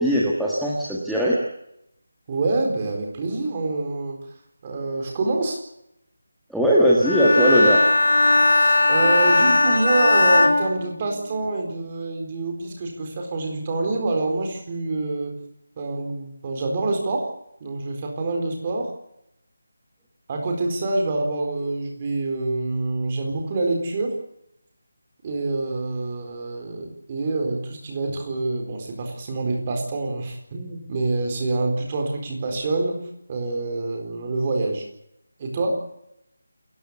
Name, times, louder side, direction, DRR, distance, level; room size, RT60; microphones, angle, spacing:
voice 1, 0.0-1.4 6.5-7.9, equal, ahead, -6 dB, 1.6 m, -19 dB
voice 2, 2.3-4.2 4.6-5.6 8.6-15.3 15.8-17.3 17.6-18.9 20.3-24.1 25.2-34.8 35.4-35.8, right 2 dB, 20° right, 2 dB, 4.2 m, -26 dB
Bowed string instrument, 7.0-11.5, left 2 dB, 75° left, 5.8 m, -18 dB
28.5 x 14.5 x 8.2 m, 0.80 s
figure-of-eight pair, 180°, 0 cm